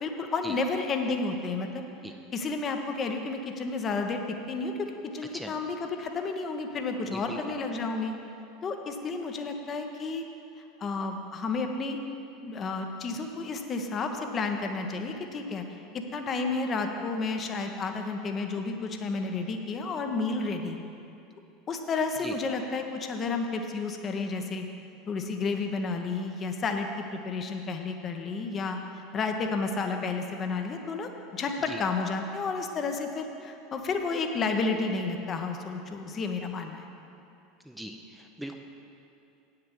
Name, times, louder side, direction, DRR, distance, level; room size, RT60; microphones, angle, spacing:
voice 1, 0.0-1.9 2.3-4.2 4.5-8.1 8.6-10.2 10.8-12.0 12.4-15.6 15.9-20.8 21.7-24.7 25.1-36.8, left 4 dB, 30° left, 4 dB, 0.9 m, -31 dB
voice 2, 7.1-7.4 22.2-22.3 31.7-31.8 37.6-38.6, right 1 dB, 5° right, 3 dB, 0.7 m, -39 dB
9.2 x 6.8 x 7.1 m, 2.6 s
figure-of-eight pair, 75°, 0 cm